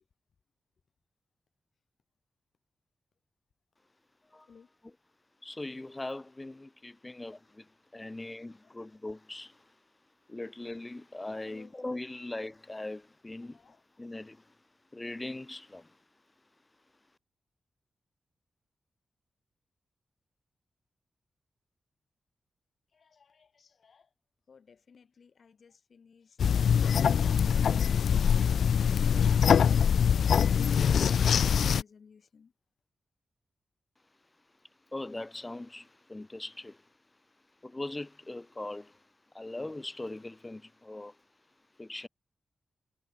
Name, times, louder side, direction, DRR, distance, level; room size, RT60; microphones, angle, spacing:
voice 1, 5.4-7.6 7.9-9.5 10.3-13.6 14.0-14.4 14.9-15.8 34.9-36.8 37.6-38.9 39.3-41.1 41.8-42.1, left 2 dB, 25° left, 3.0 m, -40 dB
voice 2, 13.4-13.8 22.9-24.1 24.5-26.6 30.2-32.5, left 6 dB, 65° left, 4.8 m, -59 dB
sound 1, 26.4-31.8, left 7 dB, 80° left, 0.5 m, -23 dB
cardioid pair, 60°, 0 cm